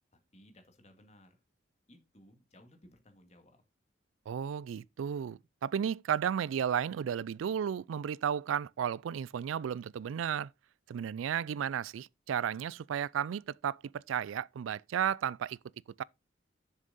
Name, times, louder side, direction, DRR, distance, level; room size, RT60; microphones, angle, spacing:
voice 1, 0.1-1.4 1.9-3.6, left 1 dB, 35° left, 2.0 m, -59 dB
voice 2, 4.3-10.5 10.9-15.6 16.0-16.1, right 8 dB, 90° right, 0.3 m, -33 dB
7.2 x 6.5 x 4.1 m
head